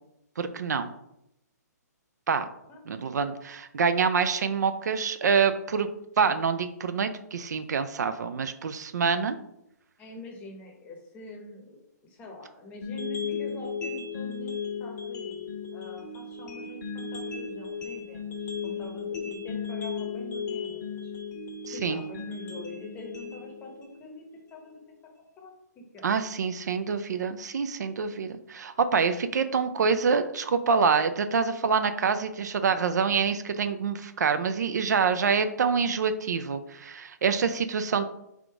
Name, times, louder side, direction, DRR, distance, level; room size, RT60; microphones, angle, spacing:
voice 1, 0.4-0.9 2.3-2.5 2.9-5.9 6.2-9.4 21.7-22.0 26.0-38.0, right 5 dB, 75° right, 10 dB, 0.4 m, -26 dB
voice 2, 10.0-21.1 21.7-24.3 24.5-24.8 25.4-26.1, left 1 dB, 15° left, 0 dB, 0.7 m, -45 dB
sound 1, 12.8-24.8, left 6 dB, 75° left, 1.0 m, -36 dB
3.5 x 2.5 x 4.5 m, 0.83 s
hypercardioid pair, 155°, 9 cm